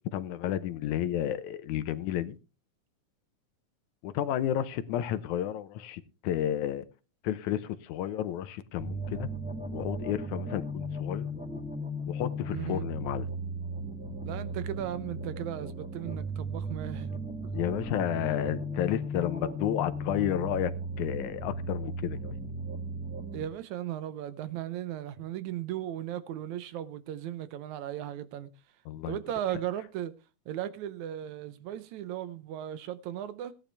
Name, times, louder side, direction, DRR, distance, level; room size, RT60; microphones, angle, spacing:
voice 1, 0.1-2.4 4.0-6.8 7.2-9.3 9.7-11.3 12.1-13.3 17.5-20.7 21.0-22.4 28.9-29.2, left 11 dB, 75° left, 2.2 m, -31 dB
sound 1, 8.8-23.4, equal, 5° right, 1.7 m, -36 dB
voice 2, 12.5-12.8 14.3-17.1 17.4-17.5 23.3-28.5 29.1-30.1 30.5-33.5, right 11 dB, 75° right, 2.1 m, -36 dB
17.0 x 10.5 x 3.3 m
omnidirectional pair, 3.5 m